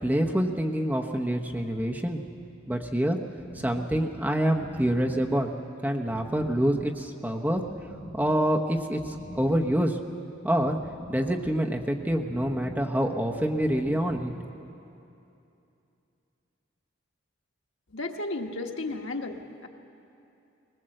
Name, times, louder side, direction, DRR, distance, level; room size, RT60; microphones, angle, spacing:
voice 1, 0.0-2.2 2.7-3.2 3.5-5.5 5.8-7.6 8.1-10.0 10.4-10.8 11.1-14.3, equal, 10° right, 1 dB, 1.0 m, -26 dB
sound 1, 3.4-14.8, right 1 dB, 70° right, 2.7 m, -46 dB
voice 2, 17.9-19.7, left 2 dB, 80° left, 3 dB, 1.4 m, -34 dB
20.0 x 20.0 x 7.7 m, 2.8 s
head